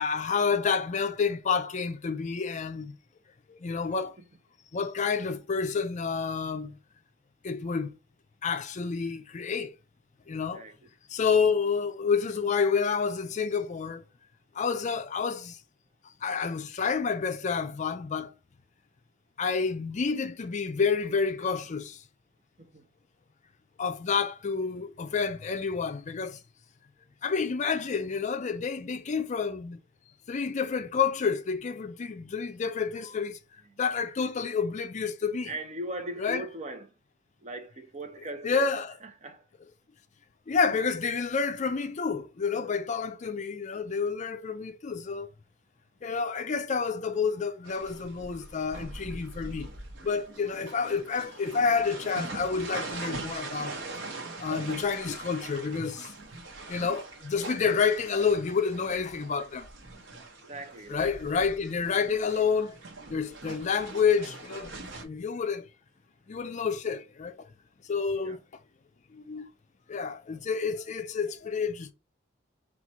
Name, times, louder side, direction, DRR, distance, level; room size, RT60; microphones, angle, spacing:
voice 1, 0.0-2.9 3.6-4.2 4.7-6.7 7.4-7.9 8.4-9.7 10.3-10.6 11.1-14.0 14.6-15.6 16.2-18.3 19.4-22.0 23.8-26.4 27.2-29.8 30.3-33.4 33.8-35.5 36.2-36.5 38.4-38.9 40.5-45.3 46.0-49.7 50.0-53.8 54.4-56.1 56.7-59.7 60.9-62.7 63.1-65.7 66.3-67.3 67.9-68.4 69.1-69.5 69.9-71.9, left 5 dB, 40° left, 0.4 m, -29 dB
voice 2, 35.4-36.9 37.4-38.7 39.2-39.4 60.5-61.1 68.2-68.4, right 1 dB, 35° right, 0.7 m, -39 dB
sound 1, 47.6-65.0, right 3 dB, 70° right, 0.9 m, -42 dB
4.1 x 2.4 x 4.3 m
head